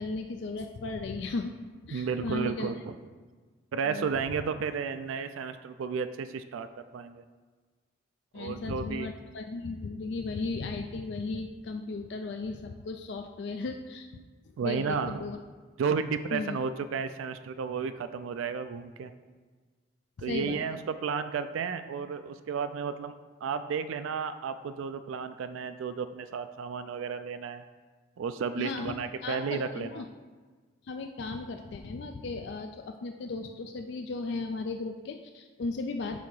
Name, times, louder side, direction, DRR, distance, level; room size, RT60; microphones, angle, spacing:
voice 1, 0.0-1.5 1.8-2.7 3.9-4.1 8.3-14.1 14.6-15.4 16.3-16.6 20.2-20.8 28.6-29.0 29.2-30.0 30.8-36.2, left 3 dB, 55° left, 5 dB, 0.3 m, -36 dB
voice 2, 1.9-2.9 3.7-6.7 6.9-7.2 8.3-9.1 14.6-15.2 15.8-19.1 20.2-23.1 23.4-27.6 28.2-30.0, right 6 dB, 75° right, 11 dB, 0.3 m, -33 dB
8.3 x 2.8 x 6.2 m, 1.4 s
head